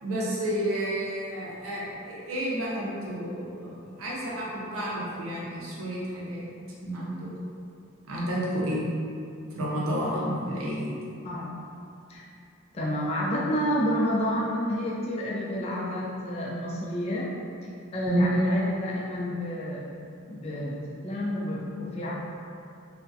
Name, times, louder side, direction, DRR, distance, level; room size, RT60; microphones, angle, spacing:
voice 1, 0.0-6.4 6.8-7.3 8.1-8.9 9.5-10.9 18.0-18.2, right 1 dB, 85° right, -5 dB, 0.6 m, -31 dB
voice 2, 12.7-17.3 17.9-19.8 20.3-22.1, equal, 30° left, -5 dB, 0.3 m, -29 dB
2.6 x 2.1 x 2.3 m, 2.5 s
head